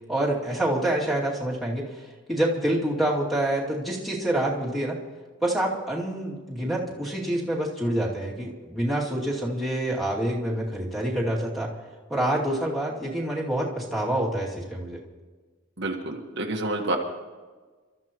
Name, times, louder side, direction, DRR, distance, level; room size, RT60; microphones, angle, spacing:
voice 1, 0.1-1.9 2.3-5.0 5.4-11.7 12.1-15.0, right 1 dB, ahead, -6 dB, 2.5 m, -27 dB
voice 2, 15.8-17.0, right 2 dB, 55° right, 1 dB, 1.5 m, -28 dB
28.5 x 13.5 x 3.0 m, 1.4 s
head